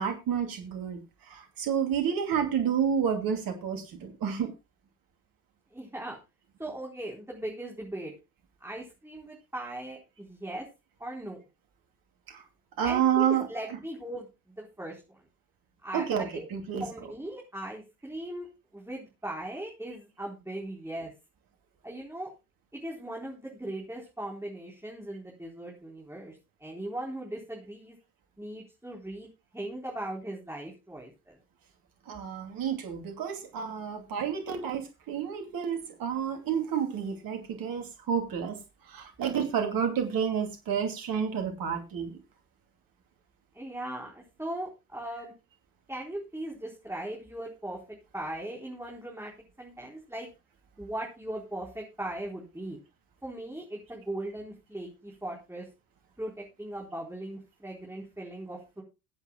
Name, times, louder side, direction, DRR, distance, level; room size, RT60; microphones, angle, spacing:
voice 1, 0.0-4.5 12.3-12.4 12.8-13.5 15.9-16.8 32.1-38.6 38.9-42.2, right 8 dB, 50° right, 5 dB, 2.7 m, -30 dB
voice 2, 5.7-6.2 6.6-8.1 8.6-10.7 11.0-11.4 12.8-15.2 15.8-16.5 16.8-18.5 18.7-21.1 21.8-22.3 22.7-28.0 28.4-31.4 43.5-45.3 45.9-49.3 49.6-50.3 50.8-52.8 53.2-55.7 56.2-58.8, right 1 dB, 5° right, -2 dB, 4.2 m, -39 dB
23.0 x 8.1 x 2.3 m, 0.27 s
hypercardioid pair, 60°, 44 cm